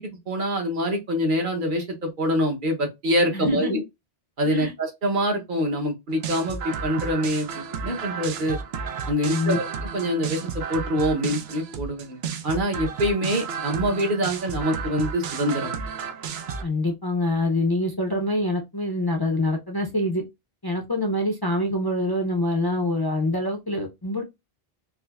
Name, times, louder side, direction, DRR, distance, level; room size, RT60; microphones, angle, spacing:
voice 1, 0.0-3.8 4.4-8.6 9.1-9.6 9.9-12.2 12.4-15.7, equal, 55° right, 1.0 m, -25 dB
voice 2, 3.3-3.8 4.4-4.7 9.3-9.6 16.6-20.2 20.6-24.2, left 1 dB, 30° left, 0.5 m, -25 dB
sound 1, 6.1-16.6, right 6 dB, 85° right, 0.8 m, -32 dB
4.8 x 2.0 x 2.3 m
omnidirectional pair, 1.0 m